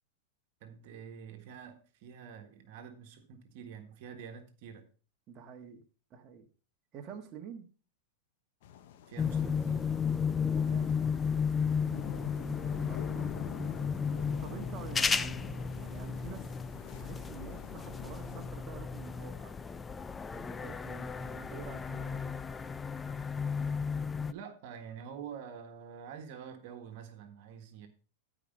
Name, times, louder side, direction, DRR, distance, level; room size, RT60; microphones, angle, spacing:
voice 1, 0.6-4.9 9.1-10.0 24.2-27.9, right 7 dB, 60° right, 1.6 m, -47 dB
voice 2, 5.3-5.8 6.1-6.5 6.9-7.7 10.5-11.1 12.4-12.5 12.9-13.4 14.4-16.5 16.9-19.6 20.3-22.3, right 7 dB, 35° right, 1.6 m, -48 dB
sound 1, 8.6-18.5, left 9 dB, 65° left, 1.0 m, -47 dB
sound 2, 9.2-24.3, left 6 dB, 15° left, 0.4 m, -34 dB
12.5 x 5.1 x 5.3 m
hypercardioid pair, 120°, 0 cm